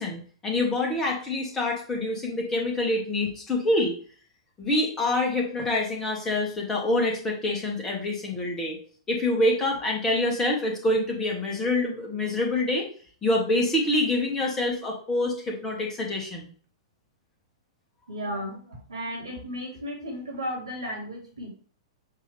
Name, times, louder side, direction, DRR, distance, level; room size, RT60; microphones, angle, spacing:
voice 1, 0.0-3.9 4.6-8.8 9.1-12.9 13.2-16.5, left 1 dB, 15° left, -1 dB, 2.0 m, -26 dB
voice 2, 18.1-21.5, equal, 75° right, -1 dB, 2.7 m, -34 dB
7.4 x 3.6 x 3.5 m, 0.43 s
figure-of-eight pair, 105°, 3 cm